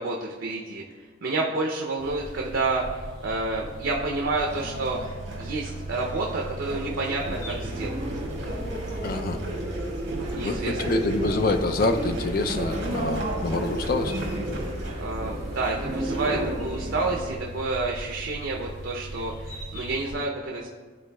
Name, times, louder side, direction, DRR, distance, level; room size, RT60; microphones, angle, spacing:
voice 1, 0.0-2.8 3.2-8.0 10.2-10.8 15.0-20.7, right 3 dB, 80° right, 0 dB, 0.6 m, -29 dB
sound 1, 2.0-20.1, right 1 dB, 30° left, 1.7 m, -39 dB
sound 2, 4.4-14.9, right 1 dB, 65° right, 1.7 m, -35 dB
sound 3, 7.2-17.2, right 1 dB, 40° right, 1.5 m, -33 dB
voice 2, 9.0-9.4 10.4-14.2, left 3 dB, 50° left, 7 dB, 0.4 m, -26 dB
11.0 x 3.9 x 2.2 m, 1.5 s
head